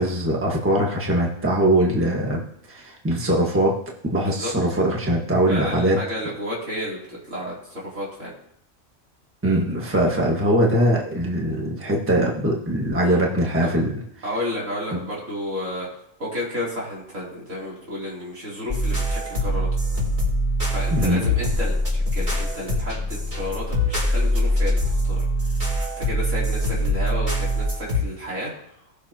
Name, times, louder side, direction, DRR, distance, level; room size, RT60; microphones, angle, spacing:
voice 1, 0.0-2.4 2.7-3.8 4.1-6.0 9.4-14.0 14.9-15.0 20.9-21.2, right 1 dB, 10° right, -2 dB, 1.5 m, -21 dB
voice 2, 4.1-4.5 5.5-8.3 13.0-13.2 13.6-13.7 14.2-15.9 16.2-19.7 20.7-25.2 25.5-28.5, left 1 dB, 90° right, -6 dB, 3.5 m, -32 dB
sound 1, 18.7-28.0, equal, 40° right, 3.3 m, -23 dB
18.5 x 6.5 x 2.9 m, 0.71 s
omnidirectional pair, 1.3 m